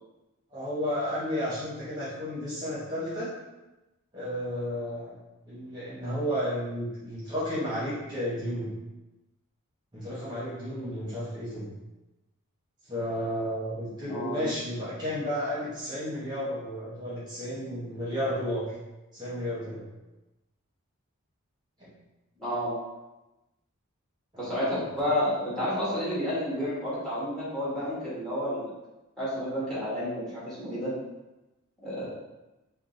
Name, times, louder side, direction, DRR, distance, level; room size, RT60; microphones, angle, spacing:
voice 1, 0.5-3.3 4.1-5.2 5.4-8.7 9.9-11.7 12.9-18.7 19.1-19.8, equal, 20° right, -10 dB, 1.2 m, -32 dB
voice 2, 14.1-14.4 22.4-22.7 24.4-28.7 29.2-30.9 31.8-32.0, equal, ahead, -9 dB, 1.3 m, -30 dB
3.7 x 2.4 x 3.8 m, 1.0 s
head